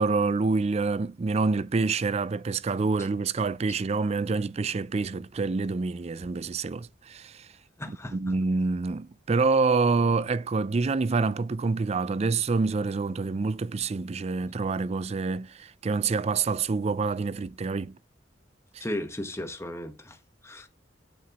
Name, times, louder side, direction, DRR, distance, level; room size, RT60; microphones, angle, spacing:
voice 1, 0.0-7.5 7.9-18.0 18.7-18.9, right 4 dB, 35° right, 0.4 m, -27 dB
voice 2, 7.8-8.2 18.8-20.2 20.4-20.7, left 1 dB, 15° left, 1.2 m, -35 dB
8.7 x 7.5 x 2.9 m
head